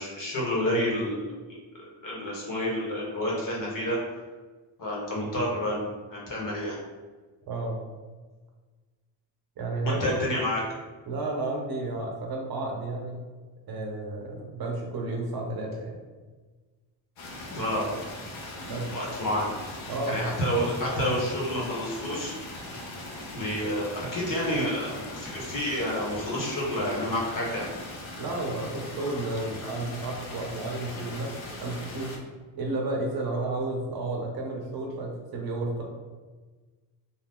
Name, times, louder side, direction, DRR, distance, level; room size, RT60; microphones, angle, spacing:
voice 1, 0.0-1.6 2.0-4.0 4.8-5.8 6.1-6.8 9.8-10.6 17.5-17.9 18.7-19.5 20.1-22.3 23.3-27.7, equal, 45° left, -4 dB, 1.1 m, -29 dB
voice 2, 7.5-7.8 9.6-10.2 11.1-13.2 13.7-16.0 18.7-18.9 19.9-20.3 28.2-31.3 31.6-32.2 32.6-35.8, right 2 dB, 50° right, 0 dB, 0.7 m, -32 dB
sound 1, 17.2-32.2, left 2 dB, 80° left, 0.9 m, -40 dB
2.7 x 2.3 x 3.5 m, 1.3 s
cardioid pair, 105°, 47 cm